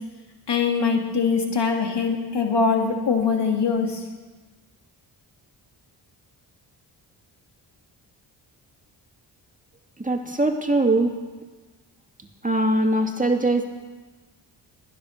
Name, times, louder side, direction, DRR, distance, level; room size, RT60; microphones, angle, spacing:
voice 1, 0.5-4.0, left 5 dB, 55° left, 3 dB, 2.5 m, -22 dB
voice 2, 10.0-11.1 12.4-13.6, right 2 dB, 15° right, 4 dB, 2.3 m, -21 dB
14.0 x 10.0 x 6.6 m, 1.3 s
supercardioid pair, 45°, 49 cm